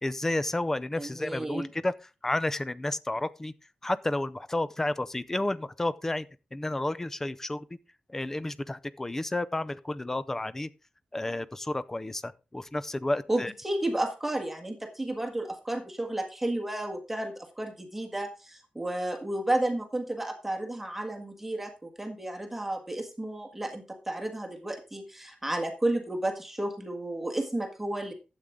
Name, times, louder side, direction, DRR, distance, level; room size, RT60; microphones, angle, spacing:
voice 1, 0.0-1.9 2.2-3.5 3.8-7.7 8.1-10.7 11.1-13.5, left 2 dB, 15° left, 0.5 m, -31 dB
voice 2, 1.0-1.7 13.3-28.1, right 1 dB, 10° right, 1.6 m, -32 dB
12.0 x 8.3 x 3.7 m
wide cardioid pair, 180°, 3 cm